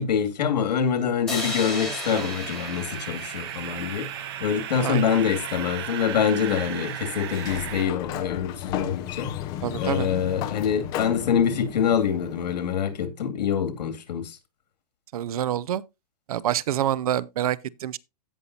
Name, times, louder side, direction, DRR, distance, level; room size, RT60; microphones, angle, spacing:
voice 1, 0.0-9.3 9.8-14.4, left 7 dB, 80° left, 2.6 m, -25 dB
sound 1, 1.3-4.6, left 3 dB, ahead, 2.3 m, -35 dB
sound 2, 1.4-7.8, right 10 dB, 40° right, 1.2 m, -35 dB
Sliding door, 7.2-12.9, left 12 dB, 20° left, 0.6 m, -34 dB
voice 2, 9.6-10.1 15.1-15.8 16.3-18.0, right 11 dB, 65° right, 0.5 m, -27 dB
16.0 x 5.6 x 2.8 m
hypercardioid pair, 170°, 21 cm